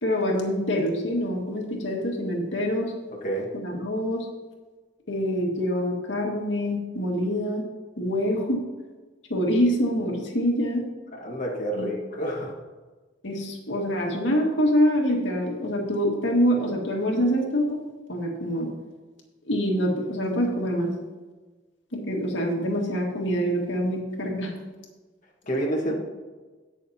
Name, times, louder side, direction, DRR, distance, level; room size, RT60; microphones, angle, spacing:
voice 1, 0.0-2.9 3.5-4.3 5.1-7.6 8.0-8.6 9.3-10.9 11.8-11.9 13.2-17.8 18.1-18.7 19.5-20.9 21.9-24.5, equal, 85° left, -1 dB, 1.9 m, -25 dB
voice 2, 3.2-3.5 11.2-12.5 25.5-25.9, right 1 dB, 45° left, -3 dB, 1.6 m, -28 dB
18.0 x 6.3 x 2.9 m, 1.3 s
head